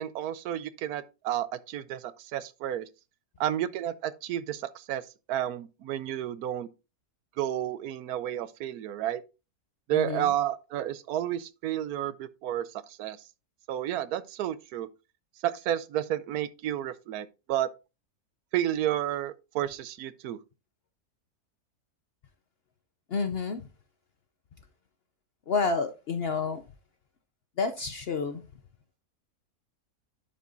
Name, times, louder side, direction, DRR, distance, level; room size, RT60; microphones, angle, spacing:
voice 1, 0.0-2.9 3.4-5.0 5.3-6.7 7.4-9.2 9.9-13.2 13.7-14.9 15.4-17.7 18.5-20.4, right 12 dB, 80° right, 1.1 m, -31 dB
voice 2, 9.9-10.3 23.1-23.6 25.5-26.6 27.6-28.4, left 4 dB, 60° left, 0.7 m, -29 dB
11.0 x 5.2 x 2.6 m
omnidirectional pair, 1.6 m